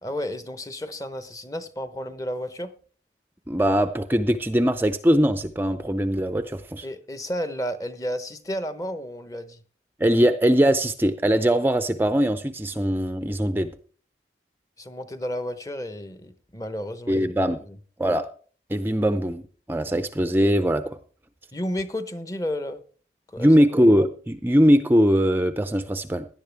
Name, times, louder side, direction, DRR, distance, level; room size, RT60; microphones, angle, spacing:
voice 1, 0.0-2.7 6.8-9.6 14.8-17.3 17.7-17.8 21.5-22.8 23.3-23.6, equal, 20° left, 11 dB, 0.9 m, -32 dB
voice 2, 3.5-6.9 10.0-13.7 17.1-17.6 18.0-18.3 18.7-19.4 19.7-21.0 23.4-26.3, equal, 10° right, 9 dB, 0.5 m, -21 dB
17.5 x 11.0 x 3.4 m, 0.43 s
head